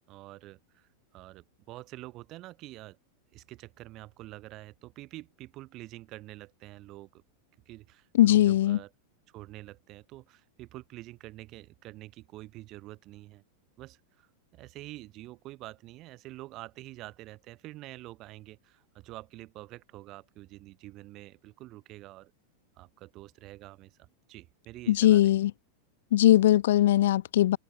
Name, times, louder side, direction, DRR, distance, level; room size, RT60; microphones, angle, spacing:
voice 1, 0.1-3.0 3.3-7.2 7.7-8.9 9.3-13.4 13.8-22.3 22.8-25.3, right 17 dB, 35° right, 6.3 m, -47 dB
voice 2, 8.2-8.8 24.9-25.5 26.1-27.6, left 13 dB, 55° left, 1.1 m, -20 dB
figure-of-eight pair, 90°, 0 cm